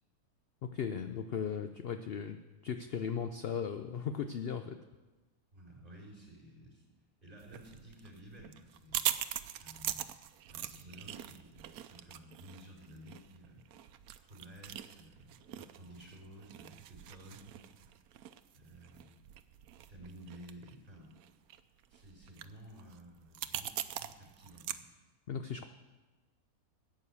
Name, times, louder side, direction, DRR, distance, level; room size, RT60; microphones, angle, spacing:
voice 1, 0.6-4.8 25.3-25.7, left 7 dB, 60° left, 8 dB, 0.6 m, -37 dB
voice 2, 5.5-6.9 7.2-9.1 9.6-10.1 10.5-13.6 14.2-17.7 18.5-19.1 19.9-21.1 21.9-24.9, right 1 dB, 35° right, -2 dB, 4.6 m, -53 dB
sound 1, 7.4-24.8, right 11 dB, 85° right, 1.1 m, -42 dB
14.0 x 9.0 x 7.0 m, 1.2 s
omnidirectional pair, 1.6 m